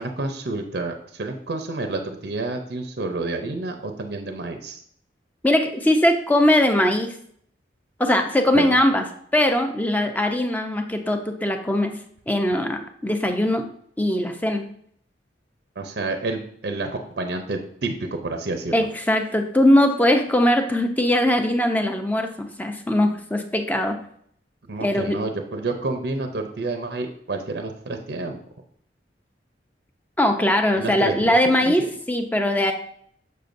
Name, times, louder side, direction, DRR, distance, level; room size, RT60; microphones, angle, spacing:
voice 1, 0.0-4.8 8.5-8.8 15.8-18.7 24.7-28.4 30.8-31.4 31.6-31.9, right 2 dB, 65° right, 5 dB, 0.6 m, -29 dB
voice 2, 5.4-7.1 8.0-9.0 9.3-11.9 12.3-13.6 14.0-14.6 18.7-24.0 24.8-25.2 30.2-32.7, left 1 dB, 10° left, 5 dB, 0.6 m, -20 dB
6.7 x 6.6 x 2.6 m, 0.64 s
head